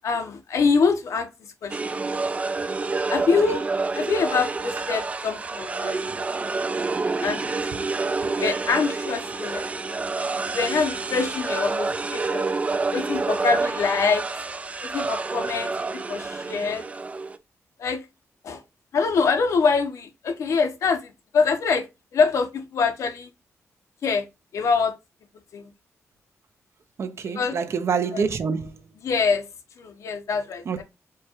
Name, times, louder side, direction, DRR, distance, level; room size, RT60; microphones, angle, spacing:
voice 1, 0.0-2.0 3.1-3.7 3.9-6.0 7.2-7.5 8.1-9.7 10.4-12.5 12.9-14.2 14.8-16.8 17.8-18.0 18.4-18.6 18.9-21.9 22.1-23.3 24.0-24.3 24.5-24.9 25.5-25.7 27.3-27.6 28.1-28.2 29.0-29.5 29.8-30.8, left 5 dB, 75° left, 0.9 m, -24 dB
sound 1, 1.7-17.4, right 3 dB, 25° right, 0.3 m, -28 dB
voice 2, 27.0-28.8 30.7-30.8, right 5 dB, 60° right, 0.7 m, -27 dB
4.9 x 2.3 x 4.3 m
wide cardioid pair, 120°, 5 cm